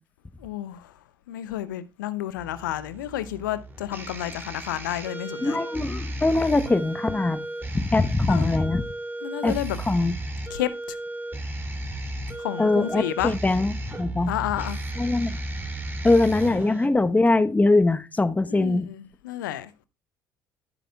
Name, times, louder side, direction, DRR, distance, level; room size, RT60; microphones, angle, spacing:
voice 1, 0.4-0.9 1.3-5.6 8.3-8.5 9.2-9.8 10.5-11.0 12.4-13.3 14.3-14.8 16.4-16.7 18.5-19.9, left 12 dB, 75° left, 0.7 m, -31 dB
sound 1, 2.4-16.9, right 1 dB, 20° right, 2.9 m, -34 dB
voice 2, 5.4-7.4 7.7-8.9 9.4-9.6 9.9-10.1 12.6-14.3 15.0-15.4 16.0-18.9, left 2 dB, 15° left, 1.0 m, -22 dB
14.5 x 9.2 x 2.3 m
figure-of-eight pair, 55°, 10 cm